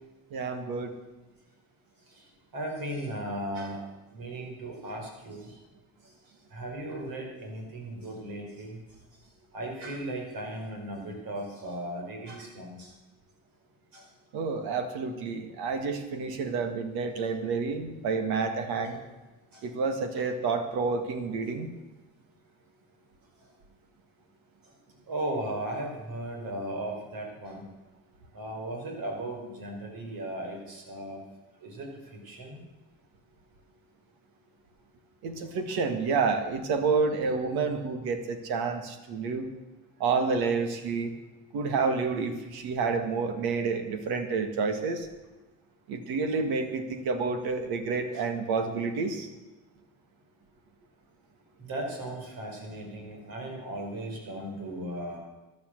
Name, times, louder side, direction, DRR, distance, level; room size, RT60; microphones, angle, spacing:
voice 1, 0.3-0.9 14.3-19.0 19.6-21.7 35.2-39.5 40.0-41.1 41.5-45.1 45.9-49.3, right 4 dB, 85° right, 7 dB, 1.9 m, -29 dB
voice 2, 2.1-3.8 4.1-5.6 6.0-6.1 6.5-8.8 9.5-12.9 13.9-14.1 18.9-19.0 19.5-19.7 20.2-20.3 25.0-27.7 28.3-31.2 31.6-32.6 51.6-55.2, right 1 dB, 70° right, 1 dB, 5.3 m, -37 dB
14.5 x 10.5 x 6.6 m, 1.1 s
supercardioid pair, 75°, 36 cm